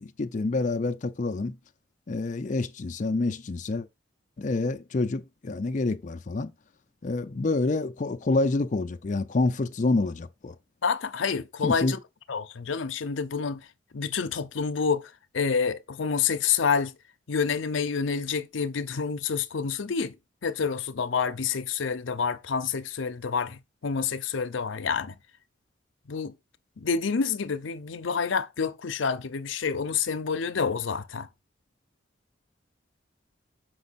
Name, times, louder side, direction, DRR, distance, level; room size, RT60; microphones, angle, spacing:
voice 1, 0.0-1.5 2.1-3.9 4.4-6.5 7.0-10.5 11.6-12.0, left 2 dB, 40° left, 0.5 m, -27 dB
voice 2, 10.8-12.0 12.3-13.6 13.9-15.1 15.3-16.9 17.3-20.1 20.4-25.1 26.1-26.3 26.8-31.3, left 6 dB, 85° left, 0.6 m, -28 dB
6.3 x 5.2 x 4.0 m
head